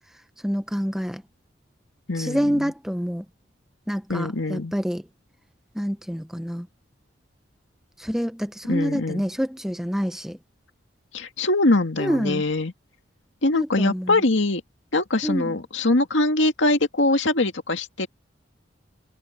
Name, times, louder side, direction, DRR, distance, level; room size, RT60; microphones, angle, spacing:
voice 1, 0.4-1.2 2.2-3.2 3.9-5.0 5.7-6.7 8.0-10.4 12.0-12.4 13.5-14.2 15.2-15.5, equal, ahead, 0.9 m, -27 dB
voice 2, 2.1-2.7 4.1-4.7 8.7-9.2 11.1-12.7 13.4-14.6 14.9-18.1, left 2 dB, 85° left, 2.1 m, -23 dB
head